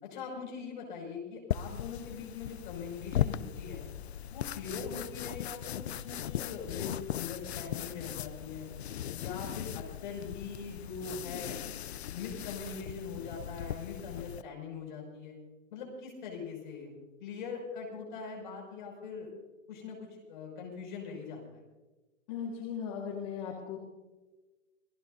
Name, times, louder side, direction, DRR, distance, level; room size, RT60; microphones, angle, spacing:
voice 1, 0.0-3.9 4.3-8.7 9.1-11.6 12.1-15.4 15.7-16.9 17.2-19.3 19.7-21.6, left 5 dB, 40° left, 0 dB, 6.1 m, -42 dB
sound 1, 1.5-14.4, left 10 dB, 60° left, 0.5 m, -38 dB
voice 2, 22.3-23.8, left 7 dB, 25° left, -1 dB, 1.8 m, -37 dB
27.5 x 17.0 x 2.7 m, 1.2 s
hypercardioid pair, 175°, 37 cm